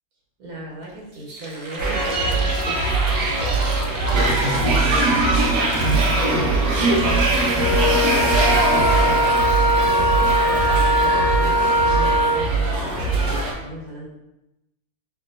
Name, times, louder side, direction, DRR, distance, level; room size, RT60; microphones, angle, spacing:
voice 1, 0.4-9.4 9.8-14.1, right 1 dB, 70° right, -5 dB, 1.4 m, -37 dB
sound 1, 0.8-0.9 1.1-5.1 5.5-6.3 6.8-7.7 8.1-11.1 11.4-11.7, right 2 dB, 55° right, 0.7 m, -36 dB
sound 2, 1.8-13.5, right 2 dB, 90° right, 1.3 m, -21 dB
Wind instrument woodwind instrument, 7.6-12.5, equal, 75° left, 1.1 m, -20 dB
4.4 x 2.9 x 2.6 m, 0.93 s
omnidirectional pair, 1.7 m